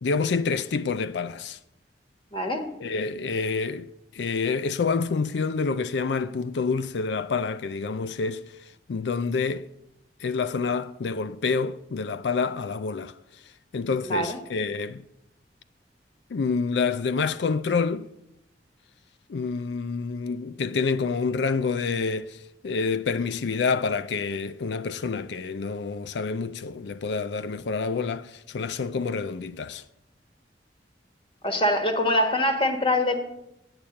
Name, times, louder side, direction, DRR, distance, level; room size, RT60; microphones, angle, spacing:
voice 1, 0.0-1.6 2.8-8.5 8.9-9.7 10.2-13.1 13.7-15.0 16.3-18.1 19.3-29.8, left 4 dB, 75° left, 0.4 m, -28 dB
voice 2, 2.3-2.7 14.0-14.4 31.4-33.1, left 1 dB, 30° left, 1.3 m, -24 dB
8.7 x 8.7 x 7.7 m
head